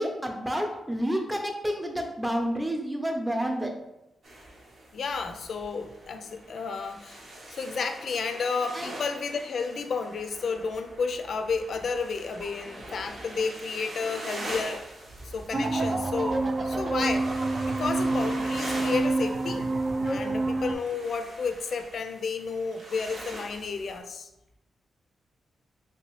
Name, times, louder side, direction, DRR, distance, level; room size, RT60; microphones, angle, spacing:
voice 1, 0.0-3.7 8.7-9.0, equal, 10° right, 2 dB, 0.7 m, -29 dB
sound 1, 4.2-24.0, right 1 dB, 75° right, 1.0 m, -43 dB
voice 2, 4.9-7.2 7.5-14.8 15.2-17.3 17.7-19.7 20.0-24.3, left 5 dB, 70° left, 6 dB, 0.4 m, -32 dB
sound 2, 15.5-20.7, right 2 dB, 45° right, 0.4 m, -27 dB
3.1 x 2.8 x 3.1 m, 0.89 s
cardioid pair, 65°, 0 cm